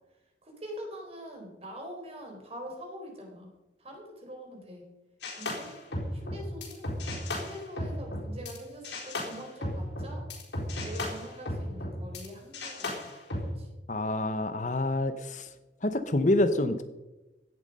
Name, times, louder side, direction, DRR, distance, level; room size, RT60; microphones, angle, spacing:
voice 1, 0.4-3.5 3.8-4.8 5.4-5.7 6.1-6.8 7.3-10.2 10.8-13.7, equal, 35° right, 1 dB, 4.1 m, -44 dB
sound 1, 5.2-8.6 8.8-12.3 12.5-13.5, left 1 dB, 75° left, 4.0 m, -35 dB
voice 2, 13.9-15.5 15.8-16.8, left 1 dB, 45° left, 10 dB, 0.8 m, -27 dB
16.5 x 11.0 x 5.4 m, 1.1 s
head